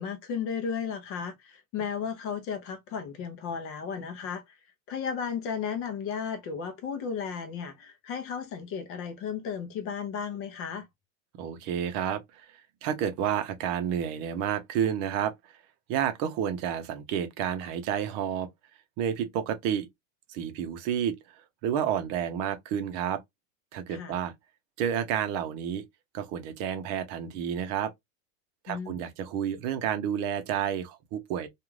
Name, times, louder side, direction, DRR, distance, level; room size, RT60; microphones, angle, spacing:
voice 1, 0.0-4.6 4.9-10.9 23.9-24.1 28.7-29.0, left 6 dB, 35° left, 0.6 m, -34 dB
voice 2, 11.4-12.5 12.8-15.3 15.9-18.5 19.0-19.9 20.3-21.1 21.6-23.2 23.7-24.3 24.8-25.8 26.1-27.9 28.6-31.5, right 9 dB, 45° right, 0.7 m, -30 dB
2.4 x 2.4 x 3.1 m
supercardioid pair, 140°, 40 cm